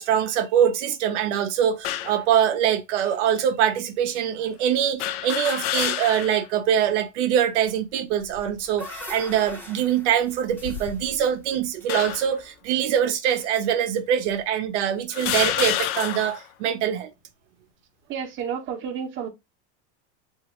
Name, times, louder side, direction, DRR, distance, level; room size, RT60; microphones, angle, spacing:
voice 1, 0.0-17.1, right 9 dB, 80° right, 0.6 m, -23 dB
sound 1, 1.8-2.2 3.1-3.2 5.0-6.5 6.9-7.0 8.1-8.6 9.3-9.5 10.5-11.3 11.9-12.4 13.3-13.4 14.3-14.4 15.1-16.5, left 12 dB, 60° left, 0.4 m, -29 dB
sound 2, 8.3-12.6, left 1 dB, 5° left, 0.7 m, -42 dB
voice 2, 18.1-19.3, right 7 dB, 35° right, 0.7 m, -31 dB
2.9 x 2.4 x 2.9 m
supercardioid pair, 120°, 35 cm